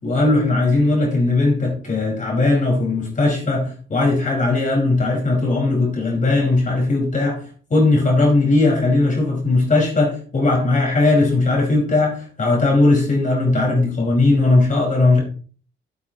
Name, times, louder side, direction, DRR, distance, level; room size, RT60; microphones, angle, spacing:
voice 1, 0.0-7.4 7.7-15.2, left 2 dB, 40° left, -1 dB, 5.0 m, -18 dB
14.5 x 8.8 x 3.0 m, 0.41 s
cardioid pair, 90°, 20 cm